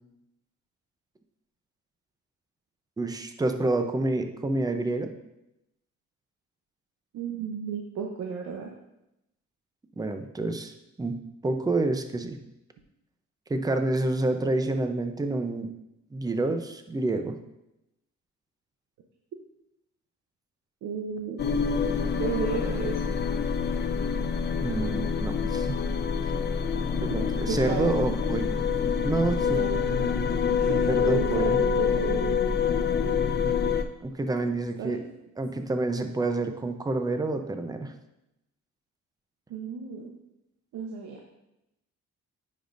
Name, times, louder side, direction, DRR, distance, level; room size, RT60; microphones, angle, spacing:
voice 1, 3.0-5.1 10.0-10.7 11.0-12.4 13.5-15.7 16.1-17.4 24.6-25.8 26.2-26.3 27.0-28.6 29.0-29.6 30.9-31.6 34.0-35.0 35.4-37.9, right 2 dB, 10° right, 7 dB, 0.6 m, -28 dB
voice 2, 7.1-8.7 20.8-21.4 22.2-23.0 27.1-27.2 27.5-28.0 29.4-30.3 30.6-32.3 34.8-35.0 39.5-40.1 40.7-41.2, right 5 dB, 80° right, 1 dB, 0.9 m, -33 dB
sound 1, 21.4-33.8, left 6 dB, 35° left, 0.5 m, -26 dB
9.4 x 5.3 x 2.6 m, 0.88 s
cardioid pair, 90°, 30 cm